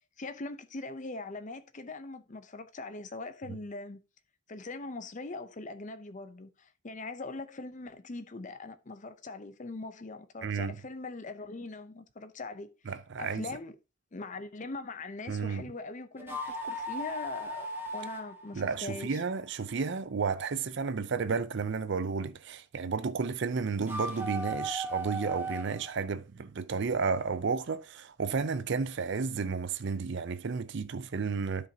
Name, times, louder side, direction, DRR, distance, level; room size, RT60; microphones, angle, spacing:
voice 1, 0.2-4.0 4.5-13.7 14.1-17.7 17.9-19.2, left 3 dB, 35° left, 0.6 m, -41 dB
voice 2, 10.4-10.8 12.9-13.4 15.3-15.6 18.5-31.7, right 5 dB, 55° right, 0.5 m, -32 dB
sound 1, 16.2-19.5 23.8-25.9, right 1 dB, 10° right, 1.2 m, -37 dB
12.0 x 5.2 x 2.8 m
head